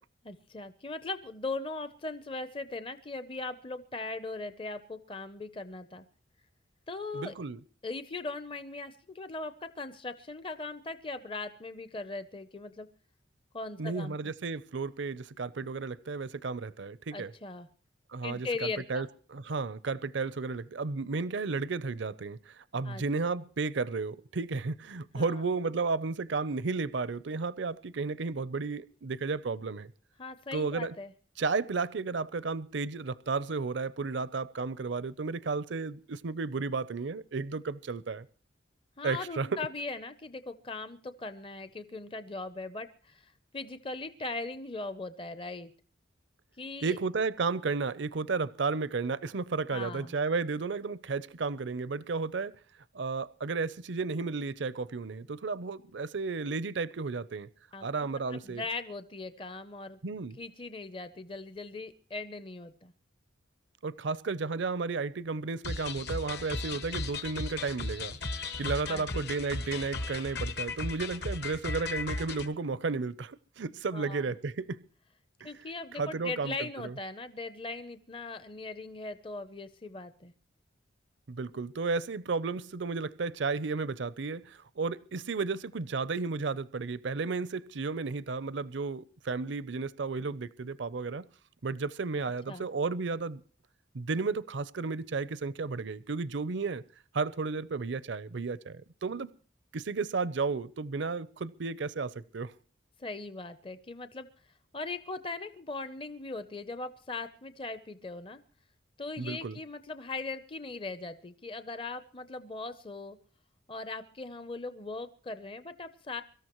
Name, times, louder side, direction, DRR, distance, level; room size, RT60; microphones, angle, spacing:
voice 1, 0.2-6.0 6.9-7.3 7.8-12.9 13.5-14.2 17.1-17.7 18.2-19.1 22.8-23.0 25.1-25.4 30.2-31.1 39.0-45.7 46.6-47.0 49.7-50.1 57.7-57.9 58.3-60.0 60.4-62.9 68.9-69.2 73.9-74.2 75.4-80.3 92.5-92.7 103.0-104.3 104.7-108.4 109.0-113.2 113.7-116.2, left 3 dB, 25° left, 0.6 m, -39 dB
voice 2, 7.1-7.6 13.8-17.3 18.1-29.9 30.5-30.9 31.4-38.2 39.0-39.5 46.8-52.5 52.9-57.5 57.8-58.6 60.0-60.4 63.8-74.8 75.4-75.5 75.9-76.5 76.8-76.9 81.3-91.2 91.6-93.4 93.9-96.8 97.1-99.3 99.7-102.5 109.2-109.6, right 4 dB, 65° right, 0.6 m, -33 dB
sound 1, 65.6-72.5, left 3 dB, 55° left, 1.1 m, -36 dB
24.0 x 13.5 x 3.0 m
head